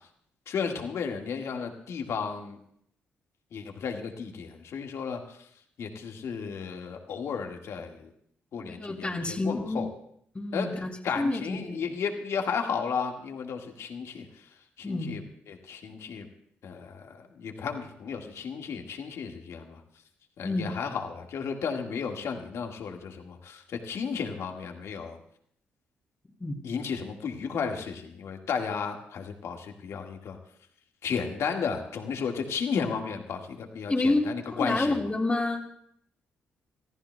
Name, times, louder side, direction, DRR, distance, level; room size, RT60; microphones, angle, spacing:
voice 1, 0.5-2.6 3.5-5.2 5.8-8.1 8.5-9.9 10.5-14.3 14.8-15.2 15.5-16.3 16.6-19.8 20.4-25.2 26.6-30.4 31.0-35.0, left 6 dB, 65° left, 3 dB, 1.8 m, -33 dB
voice 2, 8.7-9.8 10.3-10.9 11.2-11.9 14.8-15.3 20.4-20.7 26.4-26.6 33.9-35.6, left 2 dB, 25° left, 0 dB, 2.5 m, -29 dB
28.0 x 14.5 x 2.3 m, 0.68 s
hypercardioid pair, 50°, 5 cm